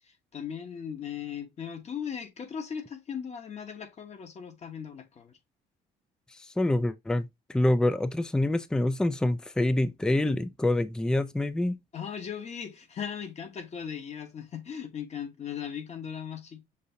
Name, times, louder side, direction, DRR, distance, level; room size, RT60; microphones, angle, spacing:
voice 1, 0.3-5.4 11.9-16.7, left 8 dB, 40° left, 1.2 m, -38 dB
voice 2, 6.6-11.8, left 1 dB, 5° left, 0.4 m, -26 dB
6.6 x 2.7 x 2.6 m
cardioid pair, 110°, 17 cm